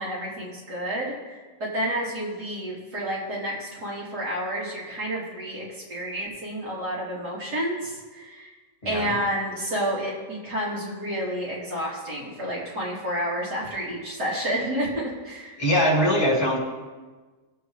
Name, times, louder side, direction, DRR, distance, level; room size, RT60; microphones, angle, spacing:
voice 1, 0.0-8.5 8.8-15.6, equal, 80° right, -6 dB, 4.0 m, -30 dB
voice 2, 8.8-9.1 15.6-16.6, equal, 35° left, -3 dB, 2.8 m, -22 dB
19.0 x 7.9 x 3.3 m, 1.3 s
omnidirectional pair, 1.7 m